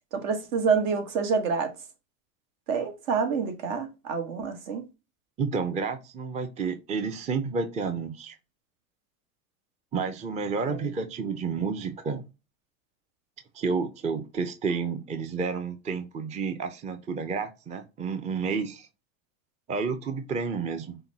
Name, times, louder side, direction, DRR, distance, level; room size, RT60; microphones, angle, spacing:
voice 1, 0.1-1.7 2.7-4.8 10.7-10.9, right 5 dB, 70° right, 1.5 m, -27 dB
voice 2, 5.4-8.4 9.9-12.2 13.5-18.9 19.7-21.0, right 5 dB, 15° right, 0.5 m, -30 dB
5.7 x 2.2 x 4.0 m
supercardioid pair, 115°, 41 cm